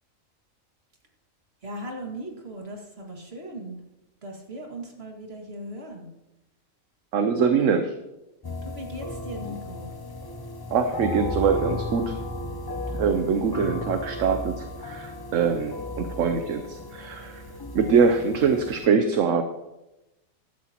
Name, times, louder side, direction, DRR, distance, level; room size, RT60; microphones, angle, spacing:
voice 1, 1.6-3.8 4.2-6.1 8.6-9.9, right 1 dB, 50° right, 1 dB, 2.3 m, -38 dB
voice 2, 7.1-7.9 10.7-12.2 13.0-17.4 17.7-19.4, right 5 dB, 70° right, 7 dB, 1.1 m, -23 dB
sound 1, 8.4-18.9, left 1 dB, 25° left, 0.5 m, -35 dB
15.5 x 12.5 x 3.0 m, 0.95 s
omnidirectional pair, 1.4 m